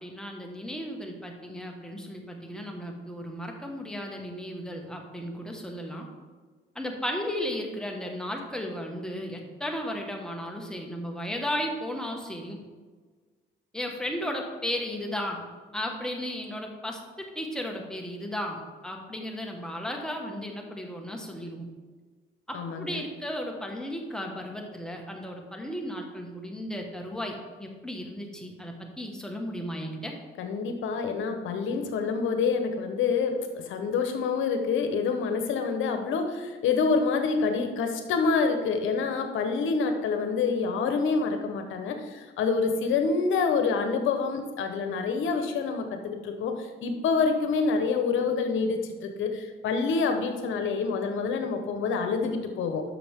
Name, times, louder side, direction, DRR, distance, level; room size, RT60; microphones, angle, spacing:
voice 1, 0.0-6.1 6.7-12.6 13.7-15.4 15.7-21.7 22.5-30.2, left 1 dB, 5° left, 1 dB, 1.6 m, -35 dB
voice 2, 22.5-23.0 30.4-52.8, left 5 dB, 80° left, 6 dB, 1.0 m, -27 dB
12.0 x 6.2 x 3.6 m, 1.4 s
cardioid pair, 90°, 20 cm